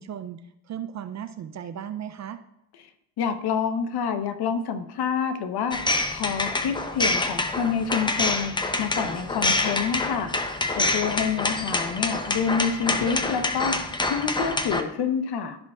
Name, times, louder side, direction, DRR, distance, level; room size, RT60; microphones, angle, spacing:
voice 1, 0.0-2.4, right 9 dB, 35° right, 10 dB, 0.5 m, -36 dB
voice 2, 3.2-5.8 6.1-10.3 10.7-13.8 14.1-15.6, left 7 dB, 50° left, 8 dB, 1.1 m, -27 dB
sound 1, 5.7-14.8, left 2 dB, 10° left, 0.6 m, -26 dB
15.0 x 5.2 x 2.4 m, 0.84 s
supercardioid pair, 90°, 48 cm